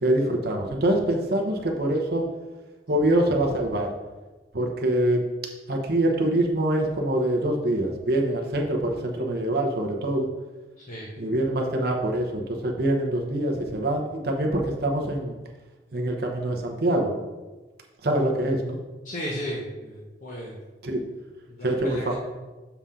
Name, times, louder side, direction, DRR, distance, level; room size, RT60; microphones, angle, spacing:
voice 1, 0.0-2.3 2.9-3.9 4.5-5.2 5.7-10.3 11.2-15.3 15.9-17.1 18.0-18.8 20.8-21.0 21.6-22.2, right 1 dB, 60° right, 1 dB, 0.9 m, -24 dB
voice 2, 10.8-11.1 19.0-20.6 21.5-22.2, equal, 45° left, -4 dB, 1.0 m, -34 dB
7.0 x 3.7 x 5.6 m, 1.2 s
head